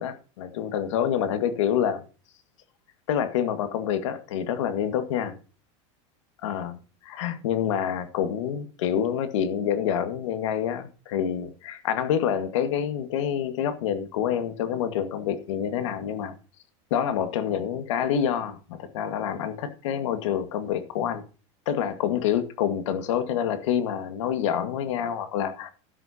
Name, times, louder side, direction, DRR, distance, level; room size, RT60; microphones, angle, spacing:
voice 1, 0.0-2.0 3.1-5.3 6.4-6.8 7.1-16.4 16.9-21.2 21.7-25.7, left 9 dB, 80° left, 1.9 m, -27 dB
12.5 x 11.5 x 2.9 m
supercardioid pair, 140°, 16 cm